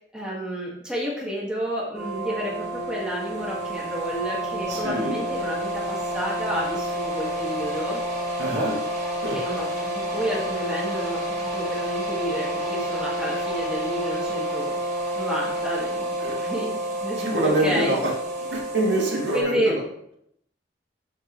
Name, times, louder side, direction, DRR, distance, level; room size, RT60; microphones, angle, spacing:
voice 1, 0.1-8.0 9.3-14.8 15.2-16.7 17.0-18.0 19.3-19.7, equal, 5° right, -5 dB, 1.8 m, -30 dB
sound 1, 1.9-19.4, right 1 dB, 40° right, 2.2 m, -29 dB
voice 2, 4.7-5.2 8.4-8.8 9.2-9.4 16.2-16.4 17.2-18.1 18.5-19.8, right 1 dB, 90° right, -2 dB, 2.2 m, -25 dB
12.5 x 4.5 x 3.1 m, 0.75 s
head